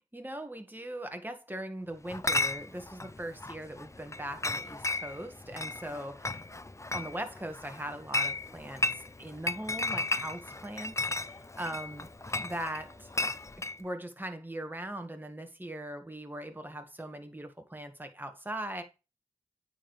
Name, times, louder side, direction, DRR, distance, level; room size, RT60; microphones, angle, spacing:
voice 1, 0.1-6.3 6.9-12.1 12.4-13.1 13.8-18.8, right 1 dB, 15° right, 1.7 m, -40 dB
Chatter / Chink clink, 2.1-13.8, left 2 dB, 25° left, 0.6 m, -35 dB
8.9 x 4.5 x 3.3 m
cardioid pair, 40°, 13 cm